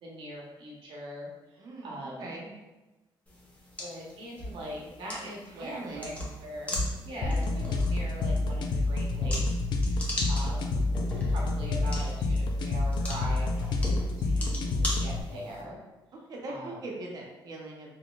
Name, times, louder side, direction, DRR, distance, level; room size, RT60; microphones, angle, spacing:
voice 1, 0.0-2.3 3.8-6.1 6.4-9.4 9.8-10.8 11.3-13.5 14.2-15.8 16.5-16.8, equal, 75° right, -2 dB, 0.9 m, -41 dB
voice 2, 1.6-2.5 5.2-6.3 7.2-7.5 16.3-17.9, right 2 dB, 50° right, -1 dB, 0.7 m, -41 dB
sound 1, 3.3-15.6, left 1 dB, 15° left, 0.7 m, -38 dB
sound 2, 7.2-15.2, left 2 dB, 60° left, 0.4 m, -28 dB
sound 3, 8.3-9.0 9.6-9.7 10.4-12.5 12.9-15.1, equal, 15° right, 0.9 m, -51 dB
3.9 x 2.8 x 2.3 m, 1.1 s
cardioid pair, 150°, 9 cm